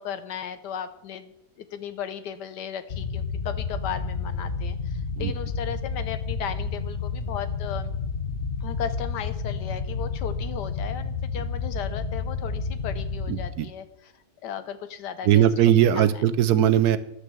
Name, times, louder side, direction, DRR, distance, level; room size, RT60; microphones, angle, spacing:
voice 1, 0.0-7.9 8.6-14.1 14.4-15.4 16.0-16.1, left 9 dB, 80° left, 10 dB, 1.5 m, -36 dB
sound 1, 2.9-13.5, left 4 dB, 45° left, 1.2 m, -30 dB
voice 2, 13.3-13.7 15.2-17.0, right 10 dB, 70° right, 12 dB, 1.2 m, -19 dB
11.5 x 6.5 x 7.7 m, 0.83 s
omnidirectional pair, 1.8 m